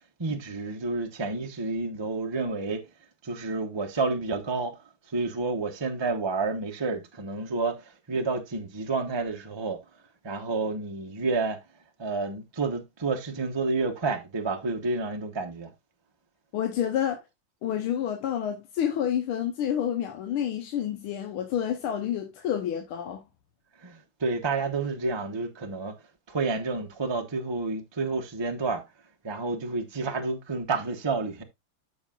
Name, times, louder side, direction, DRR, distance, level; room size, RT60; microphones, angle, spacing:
voice 1, 0.2-2.8 3.2-4.8 5.1-9.8 10.2-11.6 12.0-15.7 23.8-26.0 26.3-28.8 29.2-31.4, right 3 dB, 30° right, 0.5 m, -30 dB
voice 2, 16.5-17.2 17.6-23.2, left 9 dB, 75° left, 1.8 m, -29 dB
13.0 x 5.3 x 2.4 m
omnidirectional pair, 2.4 m